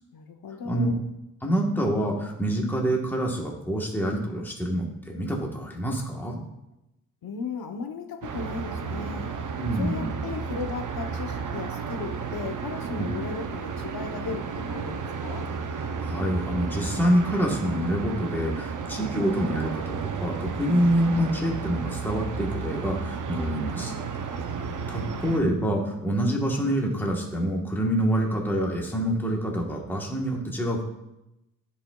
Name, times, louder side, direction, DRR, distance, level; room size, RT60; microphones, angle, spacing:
voice 1, 0.1-1.1 7.2-9.3 9.7-15.5 24.6-25.6, left 5 dB, 90° left, 5 dB, 0.9 m, -36 dB
voice 2, 1.4-6.4 9.6-10.1 13.0-13.1 16.0-23.9 24.9-30.8, equal, 5° left, -1 dB, 1.2 m, -26 dB
sound 1, 8.2-25.4, right 5 dB, 60° right, 0.6 m, -33 dB
14.0 x 5.1 x 2.3 m, 0.89 s
wide cardioid pair, 165°, 35 cm